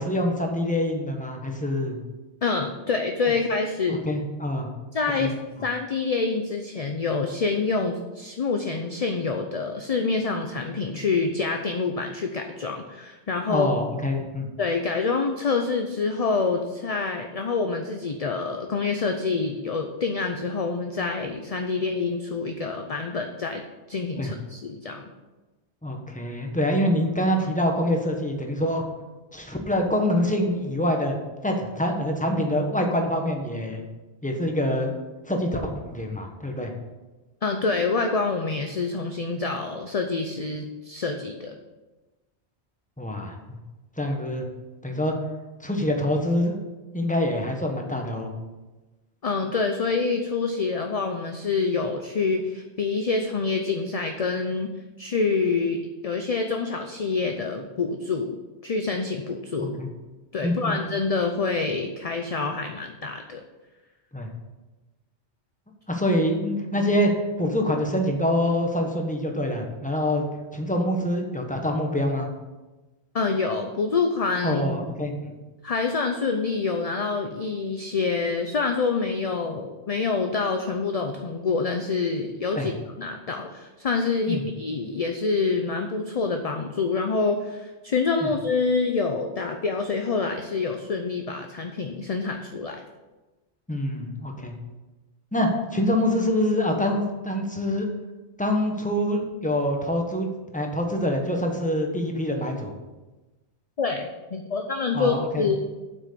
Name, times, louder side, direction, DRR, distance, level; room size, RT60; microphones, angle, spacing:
voice 1, 0.0-2.0 3.9-4.7 5.2-5.3 13.5-14.5 24.2-24.3 25.8-28.8 29.3-31.1 31.4-33.8 34.2-34.9 35.3-36.7 43.0-43.6 44.0-44.4 44.8-45.1 45.6-46.6 46.9-48.3 59.8-59.9 60.4-60.8 64.1-64.3 65.9-67.1 67.4-70.2 70.5-72.3 74.4-75.3 82.5-82.7 84.3-84.4 88.2-88.3 93.7-94.5 95.3-97.9 98.4-102.8 104.9-105.5, left 1 dB, 5° left, 2 dB, 1.3 m, -25 dB
voice 2, 2.4-4.0 4.9-5.3 5.6-13.7 14.6-23.6 23.9-25.0 37.4-41.6 49.2-54.7 55.0-59.8 60.3-63.4 73.1-74.6 75.6-82.7 83.0-92.8 103.8-105.6, left 4 dB, 40° left, 4 dB, 0.6 m, -26 dB
7.8 x 6.2 x 6.8 m, 1.1 s
omnidirectional pair, 1.1 m